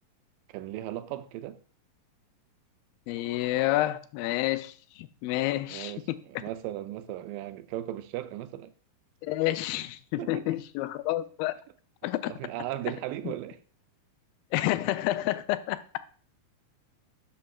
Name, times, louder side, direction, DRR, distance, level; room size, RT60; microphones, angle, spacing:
voice 1, 0.5-1.6 5.7-6.0 6.3-8.7 10.2-10.5 12.3-13.6, right 13 dB, 80° right, 2.2 m, -36 dB
voice 2, 3.1-5.9 9.2-11.6 12.0-12.3 13.2-13.3 14.5-15.8, left 16 dB, 90° left, 2.4 m, -29 dB
11.5 x 5.5 x 2.4 m
omnidirectional pair, 4.1 m